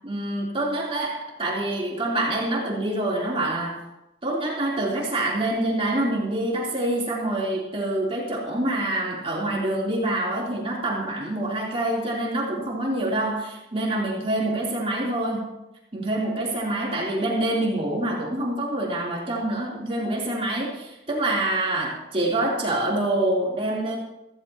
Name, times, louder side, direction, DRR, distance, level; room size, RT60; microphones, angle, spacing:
voice 1, 0.0-3.8 4.2-15.5 15.9-24.0, right 1 dB, 35° right, -4 dB, 3.5 m, -26 dB
15.5 x 15.0 x 3.0 m, 0.91 s
head